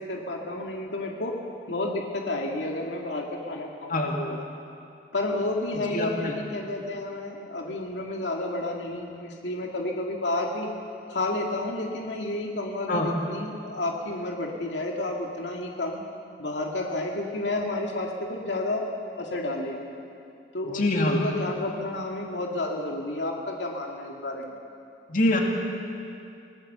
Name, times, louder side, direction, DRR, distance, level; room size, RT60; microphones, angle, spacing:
voice 1, 0.0-1.3 1.7-4.4 5.1-10.7 11.1-16.0 16.4-18.8 19.2-19.9 20.5-24.6, left 2 dB, 85° left, 0 dB, 2.1 m, -31 dB
voice 2, 5.9-6.3 12.9-13.1 20.7-21.2 25.1-25.4, left 1 dB, 50° left, 0 dB, 2.6 m, -24 dB
25.0 x 18.5 x 6.8 m, 2.6 s
head